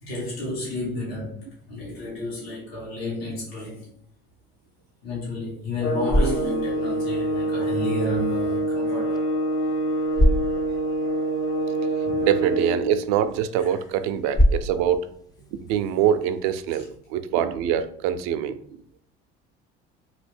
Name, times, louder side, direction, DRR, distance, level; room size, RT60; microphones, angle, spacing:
voice 1, 0.0-3.9 5.0-9.3 12.0-12.3 13.6-13.8 16.7-16.8, left 1 dB, 85° left, 1.5 m, -31 dB
sound 1, 5.7-16.8, equal, 15° left, 0.3 m, -29 dB
sound 2, 5.8-12.9, right 1 dB, 45° left, 0.7 m, -25 dB
voice 2, 12.2-15.0 15.6-18.6, right 9 dB, 65° right, 0.4 m, -24 dB
2.8 x 2.6 x 3.3 m
hypercardioid pair, 70°, 29 cm